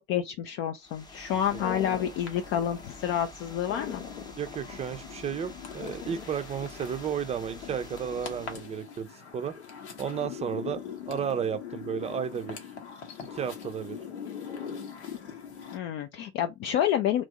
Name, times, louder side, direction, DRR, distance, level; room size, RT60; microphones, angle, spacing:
voice 1, 0.1-4.0 15.7-17.2, left 10 dB, 40° left, 0.5 m, -29 dB
sound 1, 0.8-8.7, left 2 dB, 10° left, 0.8 m, -48 dB
sound 2, 1.3-15.8, left 7 dB, 75° left, 1.1 m, -41 dB
voice 2, 4.4-9.6 10.0-12.6 13.2-14.0, right 8 dB, 20° right, 0.6 m, -33 dB
3.1 x 2.6 x 3.4 m
figure-of-eight pair, 75°, 33 cm